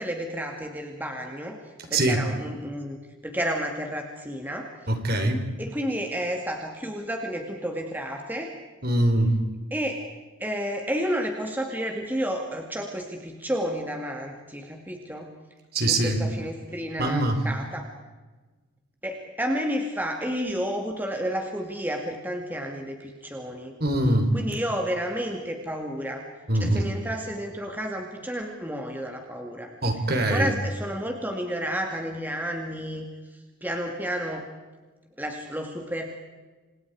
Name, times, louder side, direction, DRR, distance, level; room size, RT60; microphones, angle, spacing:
voice 1, 0.0-1.6 1.9-3.0 3.2-4.7 5.6-8.5 9.7-10.0 10.4-15.3 15.9-17.8 19.0-23.7 24.3-26.3 26.6-29.7 30.3-33.0 33.6-34.4 35.2-36.0, equal, 10° right, 2 dB, 2.2 m, -31 dB
voice 2, 4.9-5.4 8.8-9.4 15.7-16.2 17.0-17.4 23.8-24.3 26.5-26.9 29.8-30.5, right 1 dB, 45° right, 6 dB, 3.8 m, -23 dB
29.5 x 27.0 x 4.8 m, 1.3 s
head